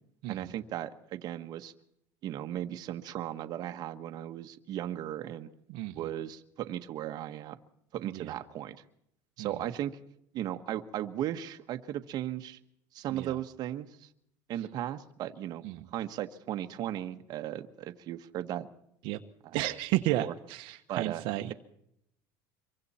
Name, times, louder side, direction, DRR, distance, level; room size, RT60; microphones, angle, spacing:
voice 1, 0.3-1.7 2.2-5.5 5.9-7.6 7.9-8.8 9.4-10.0 10.3-12.6 12.9-14.1 14.5-15.7 15.9-18.7 19.4-19.6 20.1-20.3 20.9-21.2, right 12 dB, 45° right, 7 dB, 1.4 m, -36 dB
voice 2, 19.5-21.5, right 16 dB, 65° right, 5 dB, 1.3 m, -33 dB
26.0 x 23.5 x 4.4 m, 0.74 s
cardioid pair, 140°, 9 cm